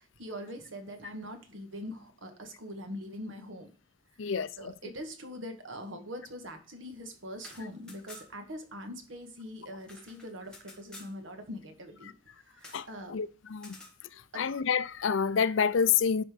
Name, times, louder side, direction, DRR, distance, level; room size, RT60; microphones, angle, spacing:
voice 1, 0.0-3.7 4.2-12.1 12.4-13.2 14.3-14.4, equal, 75° right, 1.7 m, -43 dB
voice 2, 4.2-4.7 12.7-13.8 14.3-16.2, left 6 dB, 75° left, 0.5 m, -28 dB
sound 1, 7.3-8.5 8.8-8.9 9.2-11.2 12.6-12.9 13.6-14.0, left 2 dB, 5° left, 2.0 m, -51 dB
10.5 x 4.4 x 5.1 m
head